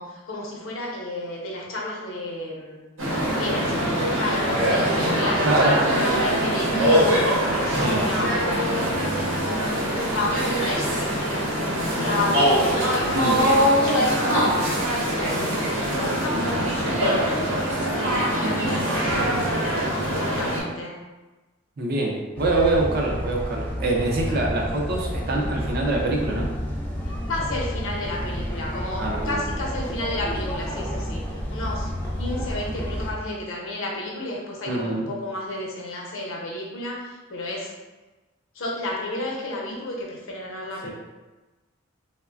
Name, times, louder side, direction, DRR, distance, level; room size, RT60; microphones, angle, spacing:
voice 1, 0.0-2.8 3.4-4.5 5.0-15.6 15.9-19.0 19.5-21.0 24.3-24.4 27.3-31.9 32.2-37.7 38.5-40.9, left 1 dB, 70° left, -2 dB, 0.6 m, -32 dB
sound 1, 3.0-20.6, equal, 80° right, 0.8 m, -23 dB
voice 2, 5.4-5.7 7.8-8.0 13.1-13.4 18.4-18.7 21.8-26.5 29.0-29.4 34.7-35.1 40.8-40.9, right 2 dB, 50° right, 0 dB, 0.5 m, -25 dB
sound 2, 22.4-33.1, equal, 10° left, 0.4 m, -30 dB
3.2 x 2.1 x 2.3 m, 1.2 s
head